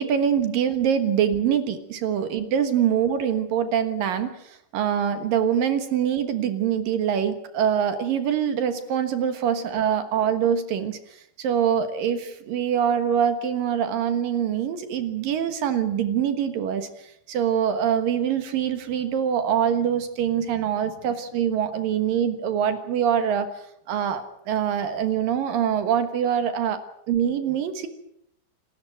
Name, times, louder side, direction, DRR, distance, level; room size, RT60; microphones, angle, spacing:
voice 1, 0.0-27.9, right 8 dB, 65° right, 9 dB, 2.5 m, -24 dB
27.5 x 13.0 x 9.1 m, 0.76 s
omnidirectional pair, 5.4 m